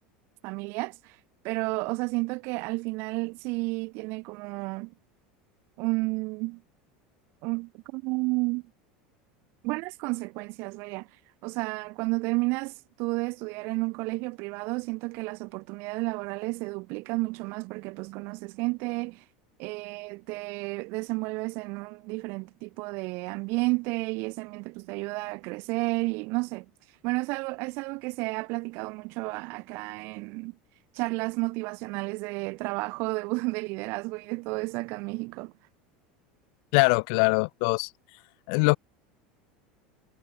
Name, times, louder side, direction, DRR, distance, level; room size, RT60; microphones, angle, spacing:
voice 1, 0.4-1.2 1.4-4.9 5.8-6.6 7.4-8.6 9.6-11.1 11.4-19.2 19.6-26.7 27.0-30.5 30.9-35.5, right 26 dB, 60° right, 1.3 m, -31 dB
voice 2, 36.7-37.9 38.5-38.8, left 38 dB, 65° left, 0.3 m, -22 dB
hypercardioid pair, 95°, 4 cm